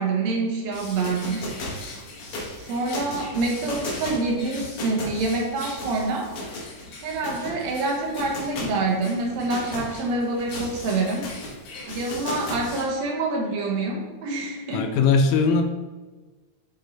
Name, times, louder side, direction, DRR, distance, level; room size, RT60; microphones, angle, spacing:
voice 1, 0.0-1.5 2.6-6.3 7.0-11.3 11.9-14.9, right 3 dB, 70° right, 0 dB, 2.1 m, -26 dB
sound 1, 0.7-12.8, left 1 dB, 60° left, 1.9 m, -36 dB
voice 2, 14.7-15.6, left 5 dB, 90° left, 5 dB, 2.0 m, -19 dB
8.1 x 3.6 x 4.0 m, 1.3 s
omnidirectional pair, 3.3 m